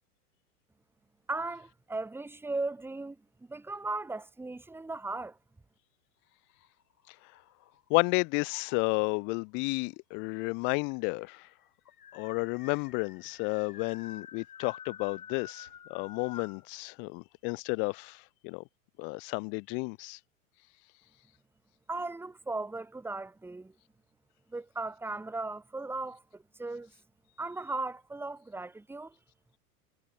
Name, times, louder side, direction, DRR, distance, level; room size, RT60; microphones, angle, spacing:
voice 1, 1.3-3.2 3.5-5.4 21.9-23.7 24.5-26.9 27.4-29.1, right 2 dB, 5° right, 1.4 m, -37 dB
sound 1, 6.5-8.0 8.5-9.1 10.1-10.2 10.5-10.6 10.9-16.7, left 8 dB, 75° left, 3.4 m, -49 dB
voice 2, 7.9-11.4 12.1-18.6 19.0-20.2, left 33 dB, 25° left, 0.5 m, -32 dB
figure-of-eight pair, 100°, 45 cm